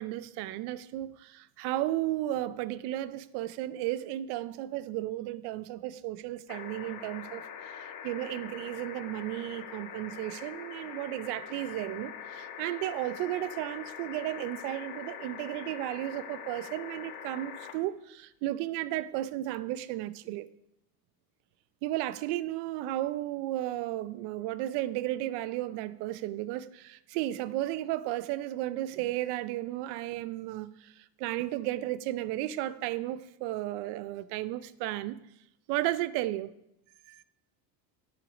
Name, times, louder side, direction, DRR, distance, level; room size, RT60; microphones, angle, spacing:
voice 1, 0.0-20.5 21.8-35.2 35.7-36.5 37.1-37.2, right 15 dB, 55° right, 0.5 m, -34 dB
sound 1, 6.5-17.7 19.2-19.3, left 8 dB, 65° left, 1.6 m, -43 dB
10.0 x 9.1 x 5.0 m
cardioid pair, 170°, 49 cm